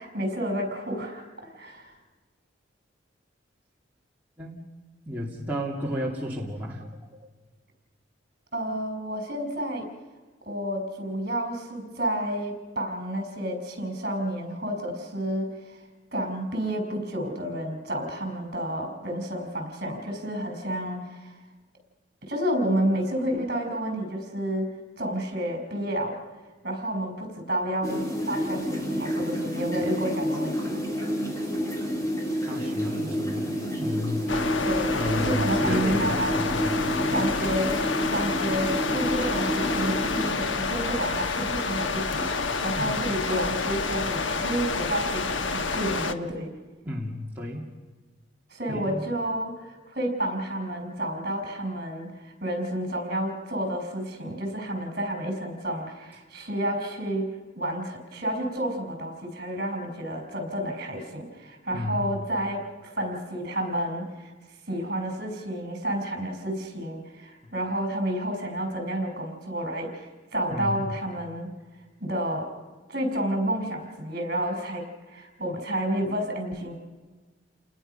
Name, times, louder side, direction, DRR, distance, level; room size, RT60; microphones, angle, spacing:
voice 1, 0.0-1.9 8.5-9.9 10.4-15.8 16.1-21.4 22.2-24.7 25.0-26.2 26.6-30.8 34.6-36.5 37.1-37.7 38.1-46.5 48.5-57.3 57.5-64.3 64.7-71.5 72.0-72.5 72.9-76.7, right 1 dB, 50° right, 4 dB, 5.0 m, -30 dB
voice 2, 5.0-7.3 32.4-34.4 34.9-37.2 42.8-42.9 46.8-47.6 48.7-49.0 61.7-62.0 70.5-70.9, left 1 dB, 10° right, -4 dB, 2.4 m, -32 dB
sound 1, 27.8-40.3, equal, 20° left, 3.4 m, -29 dB
sound 2, 34.3-46.1, left 4 dB, 85° left, 1.1 m, -29 dB
29.5 x 20.0 x 5.6 m, 1.3 s
head